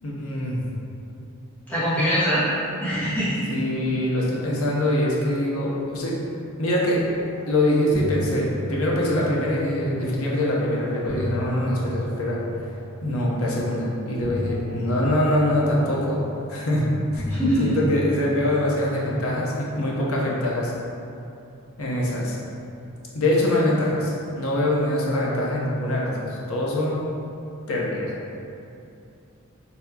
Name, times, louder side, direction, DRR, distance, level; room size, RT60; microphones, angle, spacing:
voice 1, 0.0-0.6 3.5-6.2 6.6-7.0 7.5-12.4 13.0-16.2 16.5-16.9 17.1-17.2 17.6-20.7 21.8-22.4 23.1-27.0 27.7-28.1, left 1 dB, 80° left, -4 dB, 0.7 m, -24 dB
voice 2, 1.7-2.4 2.8-3.5 17.3-17.8, equal, 10° left, -13 dB, 1.1 m, -23 dB
sound 1, 7.3-7.5 7.7-10.1 10.8-13.2 14.2-16.6 17.1-19.7, left 1 dB, 40° right, 1.1 m, -34 dB
4.2 x 2.8 x 2.7 m, 2.7 s
head